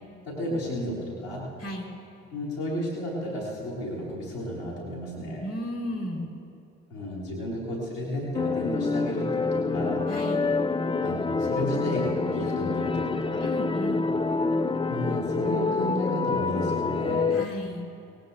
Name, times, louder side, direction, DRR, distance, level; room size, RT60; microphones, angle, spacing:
voice 1, 0.2-1.5 2.3-5.4 6.9-10.0 11.0-13.4 14.9-17.3, equal, 85° left, -6 dB, 3.3 m, -32 dB
voice 2, 1.6-2.0 5.4-6.3 10.1-10.5 13.4-14.0 17.3-17.9, equal, 45° left, 0 dB, 4.3 m, -34 dB
sound 1, 8.3-17.5, left 4 dB, 15° left, 0.5 m, -27 dB
24.0 x 19.5 x 2.6 m, 2.6 s
hypercardioid pair, 45°, 37 cm